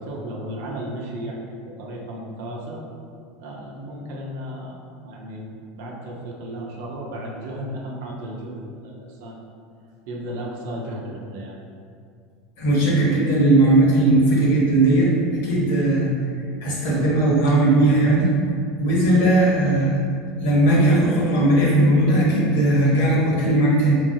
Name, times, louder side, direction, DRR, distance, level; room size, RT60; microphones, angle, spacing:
voice 1, 0.0-2.8 3.4-4.8 5.0-5.5 5.8-9.4 10.1-11.6, right 1 dB, 65° right, -2 dB, 0.7 m, -34 dB
voice 2, 12.6-15.1 15.4-16.1 16.6-18.3 18.8-20.0 20.4-24.0, right 1 dB, 70° left, -5 dB, 1.1 m, -18 dB
3.7 x 3.2 x 2.7 m, 2.3 s
hypercardioid pair, 80°, 0 cm